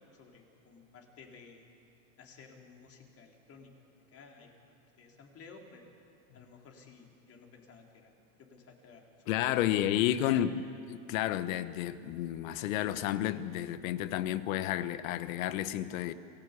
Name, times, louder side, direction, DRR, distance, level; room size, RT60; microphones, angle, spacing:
voice 1, 0.1-1.6 2.2-3.7 4.1-5.9 6.3-8.1 8.4-9.8 10.2-10.4, left 5 dB, 35° left, 4.2 m, -54 dB
voice 2, 9.3-10.5 10.9-16.1, left 12 dB, 65° left, 1.3 m, -31 dB
28.0 x 17.0 x 8.4 m
hypercardioid pair, 115°, 43 cm